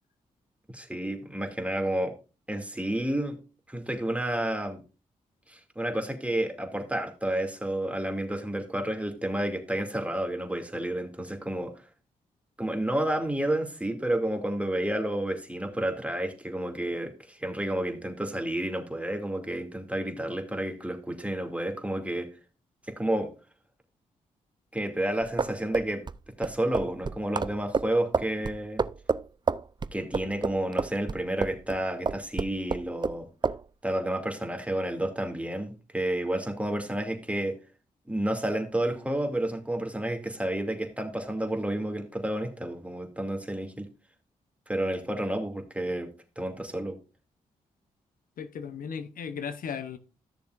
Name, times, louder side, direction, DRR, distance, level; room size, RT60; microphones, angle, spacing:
voice 1, 0.7-2.1 2.5-3.4 3.7-4.8 5.5-11.9 12.6-22.3 23.0-23.3 24.7-26.0 26.4-28.8 29.9-33.3 33.8-37.6 38.1-43.9 44.7-46.1 46.4-47.0, right 1 dB, 10° right, 2.5 m, -30 dB
sound 1, 25.2-31.8 32.1-33.2 33.4-33.6, right 4 dB, 30° right, 0.5 m, -29 dB
voice 2, 48.4-50.0, left 7 dB, 70° left, 0.8 m, -36 dB
14.0 x 6.8 x 2.5 m
supercardioid pair, 40°, 15 cm